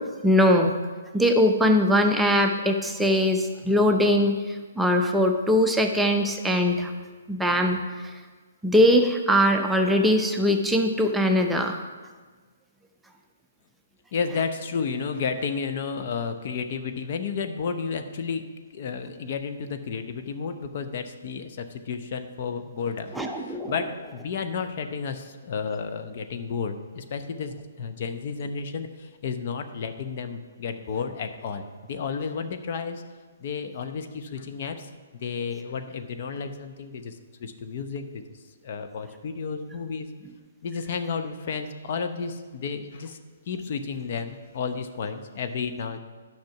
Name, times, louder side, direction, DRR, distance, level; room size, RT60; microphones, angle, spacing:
voice 1, 0.2-0.7 1.1-4.4 4.8-6.9 7.3-7.8 8.6-11.8 23.2-23.7, equal, 5° right, 3 dB, 0.6 m, -21 dB
voice 2, 14.1-18.5 18.7-33.0 33.4-34.9 35.2-38.2 38.6-40.1 40.6-43.2 43.5-46.0, left 5 dB, 50° left, 6 dB, 0.8 m, -32 dB
10.5 x 5.9 x 5.9 m, 1.4 s
figure-of-eight pair, 130°, 0 cm